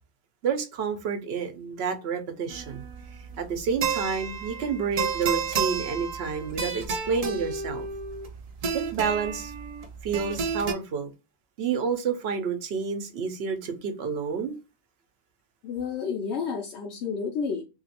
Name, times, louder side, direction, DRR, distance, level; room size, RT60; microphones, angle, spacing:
voice 1, 0.4-2.8 3.4-7.9 8.7-9.5 10.0-11.1 11.6-14.6, right 6 dB, 70° right, 0.9 m, -29 dB
sound 1, 2.5-10.7, right 6 dB, 55° right, 0.4 m, -31 dB
voice 2, 15.6-17.6, left 6 dB, 85° left, 0.9 m, -30 dB
2.9 x 2.7 x 2.8 m
omnidirectional pair, 1.1 m